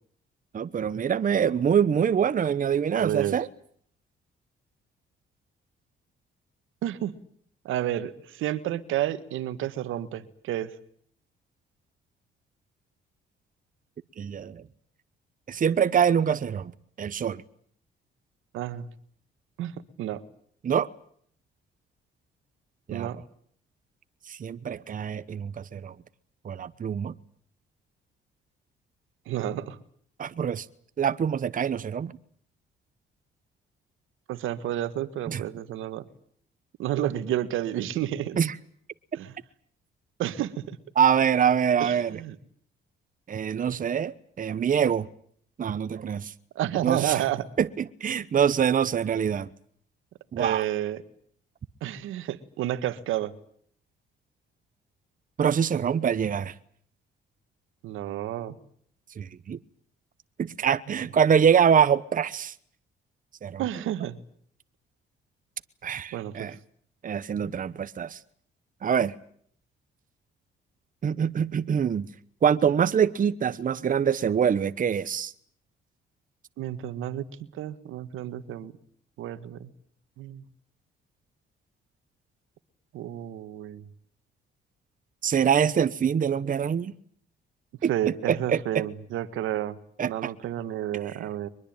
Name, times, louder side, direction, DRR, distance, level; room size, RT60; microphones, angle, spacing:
voice 1, 0.5-3.5 14.2-14.6 15.5-16.7 17.0-17.4 20.6-20.9 22.9-23.1 24.3-25.9 26.4-27.1 30.2-30.7 31.0-32.1 35.3-35.4 38.4-38.6 41.0-42.2 43.3-45.1 45.6-46.3 46.8-47.2 47.6-49.5 50.3-50.6 55.4-56.5 59.2-59.6 60.4-62.5 63.4-63.6 65.8-66.5 67.0-68.2 68.8-69.1 71.0-72.1 72.4-75.3 85.2-86.9 87.8-88.8 90.0-90.3 91.1-91.2, right 8 dB, 40° right, 1.0 m, -25 dB
voice 2, 3.0-3.4 6.8-7.1 7.6-10.7 18.5-18.9 19.6-20.2 22.9-23.2 29.3-29.8 34.3-36.0 36.8-38.4 39.1-39.3 40.2-40.8 41.8-42.4 46.5-47.5 50.4-51.0 51.8-53.3 57.8-58.5 60.9-61.0 63.6-64.2 66.1-66.5 76.6-77.2 77.5-78.7 79.2-79.7 80.2-80.4 82.9-83.8 87.9-89.8 90.0-91.5, right 12 dB, 85° right, 1.7 m, -30 dB
23.0 x 21.5 x 8.9 m
cardioid pair, 90°, 20 cm